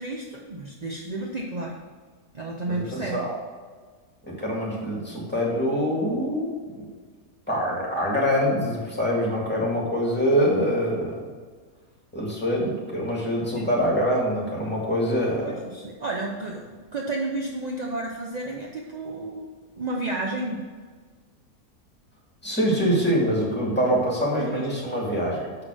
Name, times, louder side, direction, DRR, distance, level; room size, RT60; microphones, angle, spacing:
voice 1, 0.0-1.7 2.3-3.2 13.5-13.7 15.4-19.5 19.8-20.6 24.4-24.7, right 2 dB, 40° right, -1 dB, 0.6 m, -32 dB
voice 2, 2.7-3.3 4.3-6.5 6.8-6.9 7.5-11.2 12.1-15.5 22.4-25.6, equal, 5° left, -4 dB, 2.2 m, -24 dB
6.7 x 5.9 x 6.3 m, 1.5 s
omnidirectional pair, 1.7 m